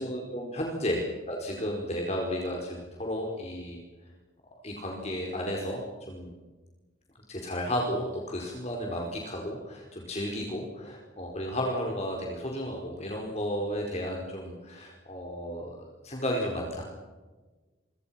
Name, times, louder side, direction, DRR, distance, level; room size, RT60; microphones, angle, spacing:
voice 1, 0.0-3.8 4.6-6.3 7.3-16.8, equal, 35° left, 0 dB, 4.9 m, -33 dB
29.0 x 25.5 x 5.9 m, 1.2 s
head